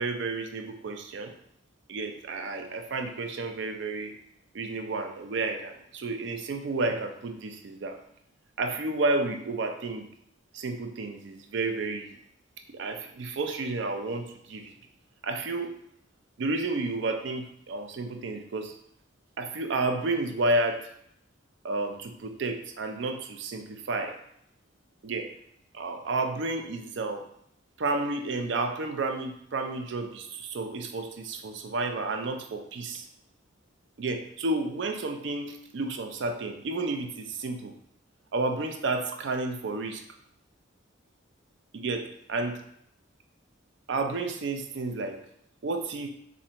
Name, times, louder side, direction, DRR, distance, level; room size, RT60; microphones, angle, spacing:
voice 1, 0.0-1.3 1.9-4.1 4.5-8.0 8.6-10.1 10.5-12.2 12.7-14.7 15.2-15.8 16.4-18.7 19.4-20.9 21.6-24.1 25.0-25.3 25.7-27.2 27.8-33.1 34.0-37.7 38.3-40.0 41.7-42.6 43.9-45.2 45.6-46.1, right 2 dB, 60° right, 5 dB, 0.4 m, -31 dB
4.1 x 2.5 x 2.8 m, 0.72 s
head